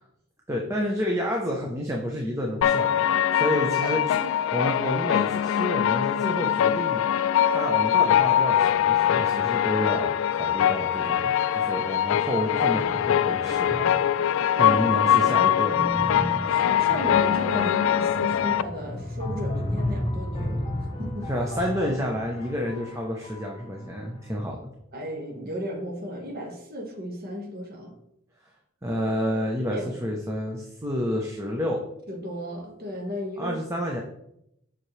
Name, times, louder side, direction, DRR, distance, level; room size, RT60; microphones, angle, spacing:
voice 1, 0.5-4.1 4.5-7.2 7.5-13.9 14.6-15.8 21.3-24.7 28.8-31.8 33.4-34.0, equal, 15° right, 0 dB, 0.8 m, -29 dB
sound 1, 2.6-18.6, left 10 dB, 75° left, 0.3 m, -23 dB
voice 2, 3.8-4.4 14.5-15.5 16.4-21.3 24.9-27.9 29.7-30.1 32.1-33.6, equal, 50° right, 0 dB, 1.6 m, -35 dB
sound 2, 12.5-23.9, left 1 dB, 30° left, 1.1 m, -34 dB
7.5 x 5.8 x 3.2 m, 0.79 s
head